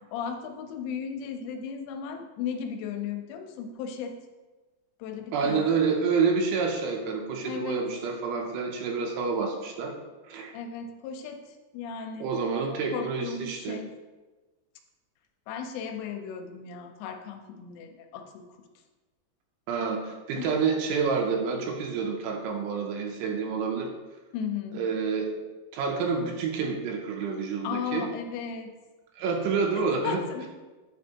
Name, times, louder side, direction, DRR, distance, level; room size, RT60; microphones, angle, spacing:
voice 1, 0.1-4.1 5.0-5.7 7.4-7.8 10.5-12.3 12.9-13.9 15.5-18.4 20.4-20.5 24.3-24.8 27.6-28.7 29.7-30.5, left 7 dB, 80° left, 5 dB, 2.7 m, -35 dB
voice 2, 5.3-9.9 10.3-10.5 12.2-13.8 19.7-23.9 24.7-25.3 25.7-28.1 29.2-30.2, right 5 dB, 85° right, 0 dB, 3.0 m, -28 dB
9.6 x 4.3 x 2.8 m, 1.2 s
omnidirectional pair, 5.3 m